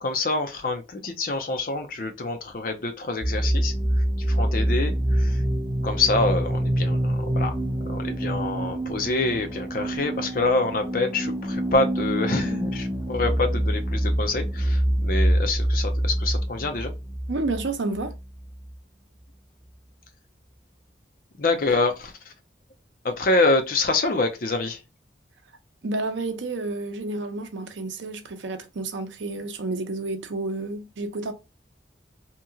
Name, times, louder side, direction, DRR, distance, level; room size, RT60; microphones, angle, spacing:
voice 1, 0.0-3.7 4.3-5.4 5.8-7.5 7.9-16.9 21.4-22.1 23.0-24.8, left 3 dB, 50° left, 0.5 m, -26 dB
sound 1, 3.2-18.8, right 1 dB, 10° right, 0.5 m, -26 dB
voice 2, 17.3-18.1 25.8-31.3, right 2 dB, 80° right, 0.6 m, -30 dB
2.9 x 2.7 x 2.4 m
head